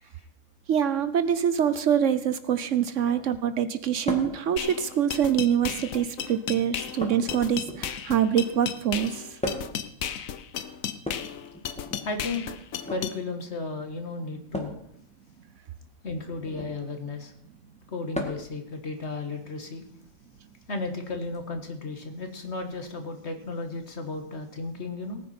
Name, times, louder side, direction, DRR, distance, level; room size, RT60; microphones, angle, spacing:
voice 1, 0.7-9.4, right 9 dB, 65° right, 12 dB, 1.0 m, -25 dB
sound 1, 4.1-4.4 5.5-6.0 7.0-8.1 9.4-9.8 11.0-12.0 12.7-13.1 14.5-14.8 16.4-16.8 18.1-18.5 20.0-20.1 21.3-21.4, left 1 dB, 5° left, 1.7 m, -35 dB
sound 2, 4.6-13.2, left 9 dB, 70° left, 1.2 m, -34 dB
voice 2, 12.0-12.5 12.9-14.7 16.0-17.3 17.9-19.9 20.7-25.2, left 3 dB, 50° left, 6 dB, 1.8 m, -34 dB
18.0 x 9.4 x 4.3 m, 0.73 s
omnidirectional pair, 1.5 m